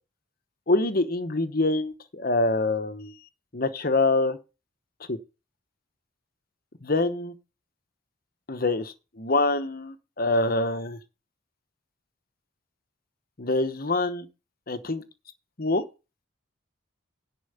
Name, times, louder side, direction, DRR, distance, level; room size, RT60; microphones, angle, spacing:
voice 1, 0.7-3.1 3.5-4.4 5.1-5.2 6.8-7.3 8.5-11.0 13.4-14.3 14.7-15.0 15.6-15.8, left 2 dB, 45° left, 1.0 m, -25 dB
10.5 x 4.6 x 8.0 m
head